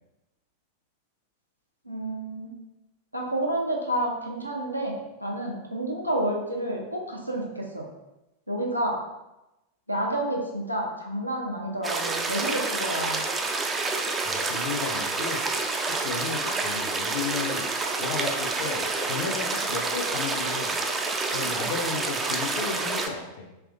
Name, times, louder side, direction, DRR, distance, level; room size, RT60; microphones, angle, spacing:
voice 1, 1.9-2.5 3.1-7.9 8.5-9.0 9.9-13.2, right 1 dB, 90° right, -1 dB, 0.6 m, -29 dB
sound 1, 11.8-23.1, right 3 dB, 15° right, 0.3 m, -28 dB
voice 2, 14.2-15.4 15.9-20.8 21.3-23.5, left 5 dB, 50° left, 2 dB, 0.6 m, -34 dB
3.4 x 3.0 x 2.4 m, 0.97 s
figure-of-eight pair, 90°, 0 cm